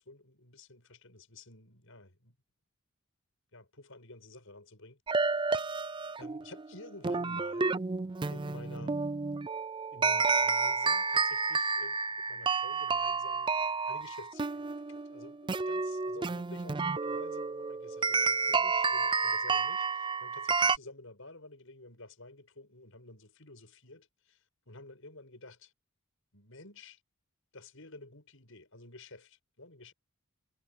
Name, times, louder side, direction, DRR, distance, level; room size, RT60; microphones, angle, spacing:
voice 1, 0.0-2.4 3.5-5.6 6.2-7.8 8.3-9.0 9.9-13.5 13.9-25.7 26.3-27.0 27.5-29.9, left 2 dB, 65° left, 7.3 m, -51 dB
sound 1, 5.1-20.8, right 4 dB, 20° right, 0.4 m, -30 dB
head